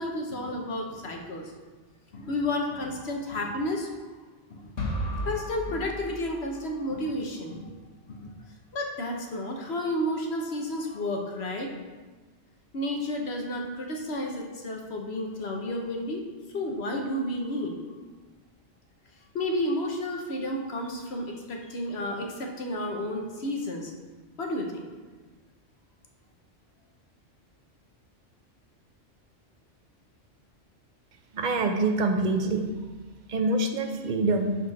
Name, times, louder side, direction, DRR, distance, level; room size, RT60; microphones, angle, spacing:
voice 1, 0.0-1.4 2.1-3.9 4.5-4.7 5.1-7.7 8.1-8.3 8.7-11.7 12.7-16.2 16.5-17.8 19.3-23.9 24.4-24.9, left 1 dB, 60° left, 1 dB, 1.3 m, -31 dB
sound 1, 4.8-6.8, equal, 90° left, 1.7 m, -34 dB
voice 2, 31.3-32.7 33.3-34.6, right 2 dB, 45° right, 5 dB, 0.7 m, -25 dB
11.5 x 4.4 x 4.2 m, 1.3 s
omnidirectional pair, 1.3 m